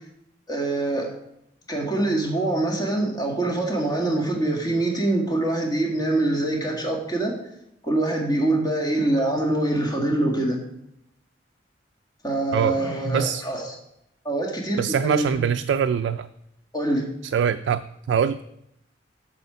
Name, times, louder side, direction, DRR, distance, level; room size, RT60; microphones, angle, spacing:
voice 1, 0.5-1.1 1.7-7.3 7.8-10.6 12.2-13.7 14.2-15.3 16.7-17.1, right 2 dB, 20° left, -1 dB, 1.7 m, -24 dB
voice 2, 14.8-16.3 17.3-18.4, right 7 dB, 85° right, 9 dB, 0.3 m, -23 dB
8.3 x 4.4 x 6.7 m, 0.80 s
head